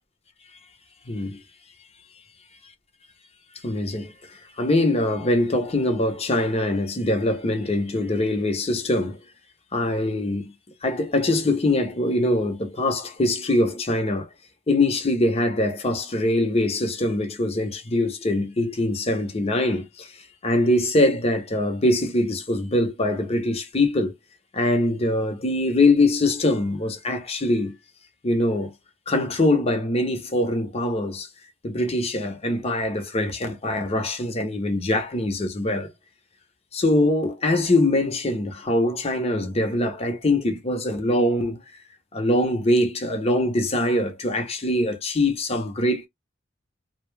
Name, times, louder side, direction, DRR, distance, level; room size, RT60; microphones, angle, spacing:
voice 1, 1.1-1.4 3.6-4.1 4.6-9.2 9.7-10.5 10.8-14.3 14.7-20.1 20.4-24.1 24.5-27.7 28.2-28.7 29.1-31.3 31.6-35.9 36.7-41.6 42.1-46.1, left 1 dB, 35° left, 0.7 m, -23 dB
2.7 x 2.1 x 3.2 m
head